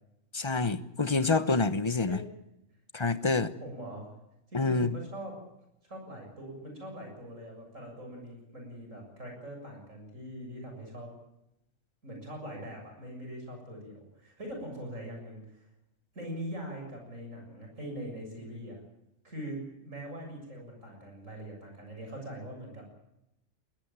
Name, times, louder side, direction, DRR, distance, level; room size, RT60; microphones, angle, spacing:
voice 1, 0.3-2.2 2.9-3.5 4.5-4.9, left 3 dB, 25° left, 13 dB, 1.0 m, -27 dB
voice 2, 3.6-4.1 4.5-5.3 5.9-11.1 12.0-15.6 16.1-18.8 19.2-22.9, equal, 75° right, 2 dB, 7.5 m, -42 dB
21.0 x 17.5 x 9.0 m, 0.86 s
omnidirectional pair, 1.3 m